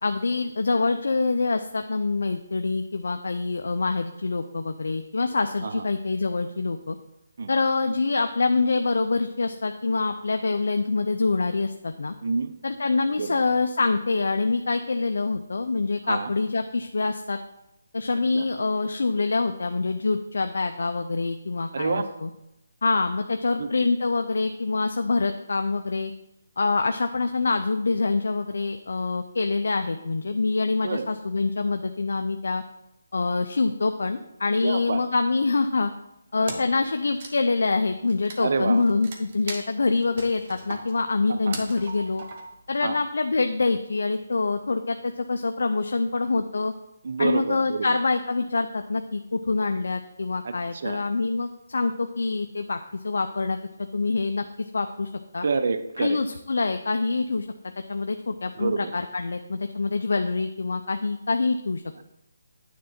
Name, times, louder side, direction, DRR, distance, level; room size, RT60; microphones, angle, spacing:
voice 1, 0.0-7.0 7.5-12.1 12.6-17.4 17.9-22.3 22.8-26.1 26.6-32.6 33.1-35.9 36.3-42.2 42.7-46.7 47.2-54.5 54.7-55.5 56.0-57.5 57.9-61.8, left 3 dB, 75° left, 7 dB, 0.5 m, -25 dB
voice 2, 12.2-12.5 13.2-13.4 16.0-16.3 18.3-18.4 21.7-22.1 23.6-23.7 30.8-31.1 34.6-35.0 36.4-36.6 38.4-38.9 41.3-41.6 42.8-43.0 47.0-48.0 50.4-51.0 55.4-56.2 58.6-58.9, right 4 dB, 55° right, 10 dB, 0.6 m, -28 dB
Wood, 36.5-36.8 37.1-42.7, right 3 dB, 35° right, 1.1 m, -39 dB
9.4 x 3.8 x 5.8 m, 0.87 s
hypercardioid pair, 165°, 0 cm